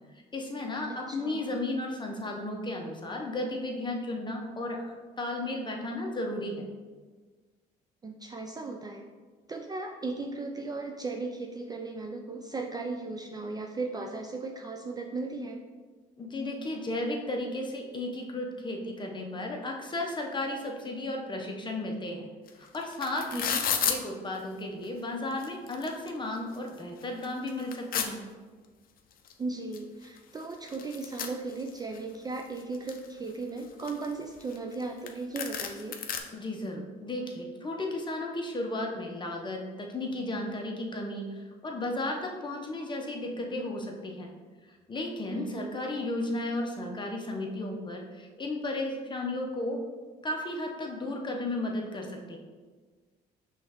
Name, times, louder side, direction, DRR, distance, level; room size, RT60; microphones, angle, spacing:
voice 1, 0.3-6.7 16.2-22.3 22.6-23.4 23.8-28.2 36.3-44.3 44.7-49.8 50.2-52.4, left 2 dB, 25° left, 1 dB, 0.8 m, -34 dB
voice 2, 0.9-1.6 8.0-9.0 9.5-15.6 23.3-23.6 29.4-36.0 45.3-45.7, right 3 dB, 20° right, 2 dB, 0.4 m, -36 dB
sound 1, 22.5-22.6 22.7-24.0 24.8-24.9 25.3-26.1 26.5-26.6 27.0-28.1 29.3-29.4 29.7-29.8 30.0-32.0 32.4-33.1 33.6-34.8 35.1-35.2 35.4-36.2, left 7 dB, 50° left, 0.5 m, -32 dB
5.4 x 3.2 x 3.0 m, 1.4 s
supercardioid pair, 80°, 19 cm